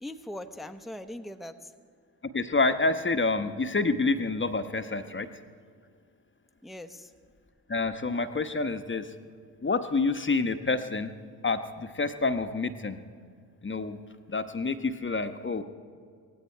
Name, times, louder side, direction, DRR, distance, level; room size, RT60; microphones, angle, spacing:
voice 1, 0.0-1.7 6.6-7.1, left 1 dB, ahead, 8 dB, 1.0 m, -40 dB
voice 2, 2.3-5.3 7.7-9.1 9.6-11.1 11.4-13.0 13.6-14.0 14.3-15.6, left 3 dB, 25° left, 9 dB, 1.2 m, -28 dB
18.5 x 16.0 x 4.6 m, 2.1 s
hypercardioid pair, 40°, 45 cm